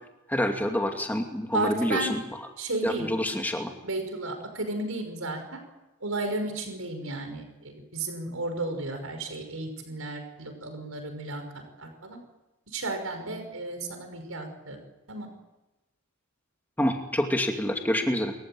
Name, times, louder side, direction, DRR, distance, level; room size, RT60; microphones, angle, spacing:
voice 1, 0.3-2.2 2.8-3.7 16.8-18.3, left 1 dB, 10° left, 3 dB, 2.5 m, -27 dB
voice 2, 1.5-2.1 2.6-3.1 3.8-5.6 6.0-11.4 11.8-12.2 12.7-14.8 15.1-15.3, right 2 dB, 90° right, 6 dB, 5.8 m, -33 dB
28.0 x 15.0 x 9.2 m, 1.0 s
head